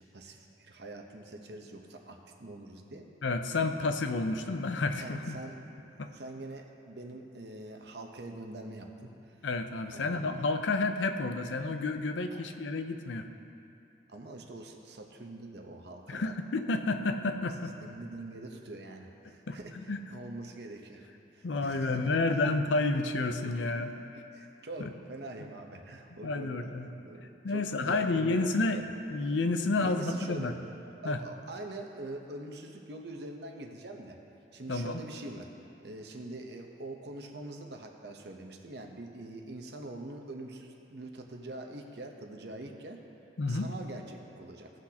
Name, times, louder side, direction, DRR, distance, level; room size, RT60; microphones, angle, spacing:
voice 1, 0.1-3.1 5.0-5.7 6.1-9.1 9.9-10.2 14.1-16.3 17.8-21.1 21.3-22.2 23.4-23.8 24.3-26.7 27.0-28.9 29.8-30.6 31.0-34.2 34.5-35.5 35.8-43.0 43.5-44.7, right 2 dB, 65° right, 3 dB, 0.9 m, -44 dB
voice 2, 3.2-5.4 6.0-6.1 9.4-13.3 16.1-17.7 19.5-19.6 19.9-20.0 21.4-23.9 24.8-24.9 26.2-26.9 27.4-28.8 29.1-30.5 31.0-31.2 34.7-35.0 43.4-43.7, left 3 dB, 85° left, 7 dB, 0.6 m, -30 dB
17.0 x 6.1 x 2.9 m, 2.7 s
head